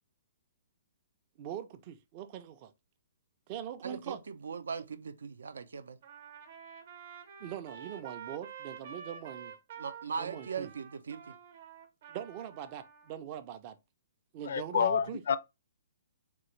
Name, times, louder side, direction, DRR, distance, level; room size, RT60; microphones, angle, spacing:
voice 1, 1.4-2.7 3.5-4.2 7.4-9.5 10.2-10.7 12.1-13.8 14.3-15.2, right 10 dB, 25° right, 0.4 m, -42 dB
voice 2, 3.8-6.0 9.8-11.3, right 6 dB, 90° right, 0.5 m, -39 dB
Trumpet, 6.0-13.1, right 7 dB, 50° right, 0.7 m, -48 dB
voice 3, 14.5-15.4, left 7 dB, 60° left, 0.4 m, -28 dB
3.7 x 2.5 x 3.0 m
hypercardioid pair, 170°, 0 cm